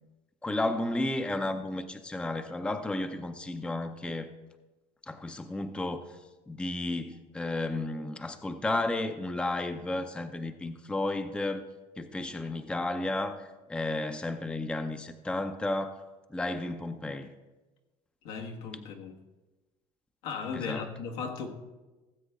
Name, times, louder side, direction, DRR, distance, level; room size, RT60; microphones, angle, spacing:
voice 1, 0.4-4.3 5.0-6.2 6.5-11.7 12.0-16.0 16.3-17.3 20.5-20.9, left 2 dB, 5° left, 0.6 m, -33 dB
voice 2, 18.2-19.2 20.2-21.5, left 5 dB, 85° left, 1.6 m, -36 dB
17.0 x 7.9 x 3.6 m
cardioid pair, 135°, 15 cm